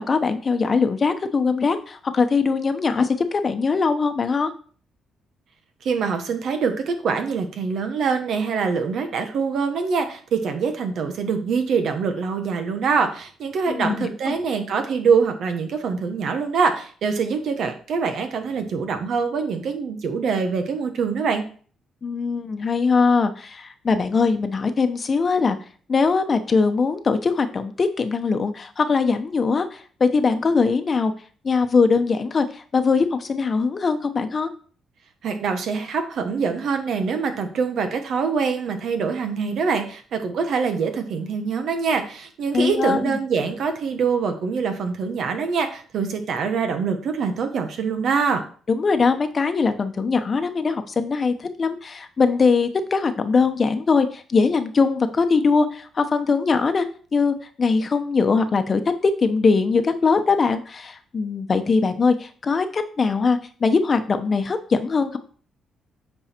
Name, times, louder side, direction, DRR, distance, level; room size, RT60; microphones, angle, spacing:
voice 1, 0.0-4.5 13.7-14.3 22.0-25.6 25.9-31.1 31.4-34.5 42.5-43.1 48.7-56.8 57.1-65.2, left 4 dB, 40° left, 9 dB, 1.0 m, -21 dB
voice 2, 5.8-21.4 35.2-48.4, right 5 dB, 65° right, 6 dB, 1.3 m, -24 dB
8.5 x 4.7 x 4.5 m, 0.43 s
cardioid pair, 90°, 0 cm